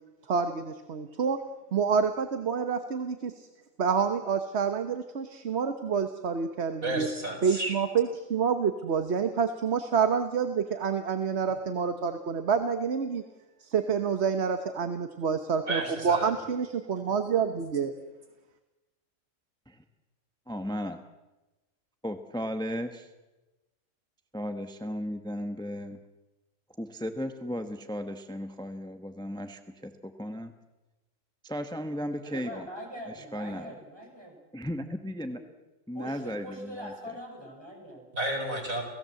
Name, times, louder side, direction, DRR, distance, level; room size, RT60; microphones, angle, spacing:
voice 1, 0.3-1.4 1.7-3.5 3.8-7.1 7.4-13.2 13.6-17.9, right 6 dB, 55° right, 8 dB, 1.4 m, -28 dB
voice 2, 6.8-7.7 15.7-16.3 38.1-38.8, right 1 dB, 85° right, 2 dB, 5.4 m, -31 dB
voice 3, 20.5-21.0 22.0-23.1 24.3-26.0 26.8-30.5 31.4-32.7 33.2-33.7 34.5-35.4 35.9-36.9, equal, 5° left, 8 dB, 1.1 m, -35 dB
voice 4, 32.2-34.3 35.3-35.4 35.9-38.1, equal, 20° right, 0 dB, 6.7 m, -42 dB
29.0 x 17.0 x 7.8 m, 1.1 s
omnidirectional pair, 1.4 m